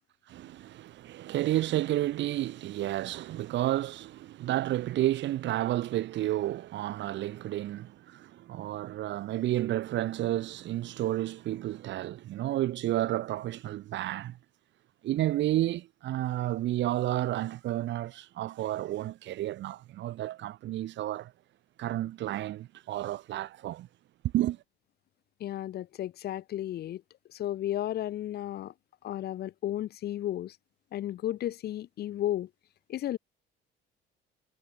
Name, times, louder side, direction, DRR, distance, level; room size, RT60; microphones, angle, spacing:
voice 1, 0.3-14.4 15.0-21.3 21.8-23.9 24.3-24.6, right 14 dB, 60° right, 4.0 m, -31 dB
voice 2, 25.4-27.0 27.3-28.7 29.0-30.6 30.9-32.5 32.9-33.2, left 12 dB, 50° left, 1.3 m, -33 dB
cardioid pair, 150°, 20 cm